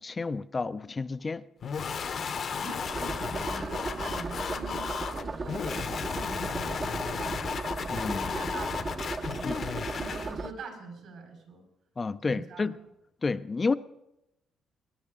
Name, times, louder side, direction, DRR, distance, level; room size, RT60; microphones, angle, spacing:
voice 1, 0.0-1.4 7.9-8.3 9.4-9.5 12.0-12.8 13.2-13.7, left 4 dB, 30° left, 0.4 m, -30 dB
sound 1, 1.6-10.3, left 6 dB, 55° left, 0.9 m, -34 dB
voice 2, 2.5-7.5 8.2-8.8 9.2-9.7 10.1-11.6 12.2-12.7, right 3 dB, 75° right, 4.3 m, -44 dB
sound 2, 2.9-10.5, right 3 dB, 35° right, 0.7 m, -36 dB
19.5 x 11.0 x 3.7 m
cardioid pair, 90°, 0 cm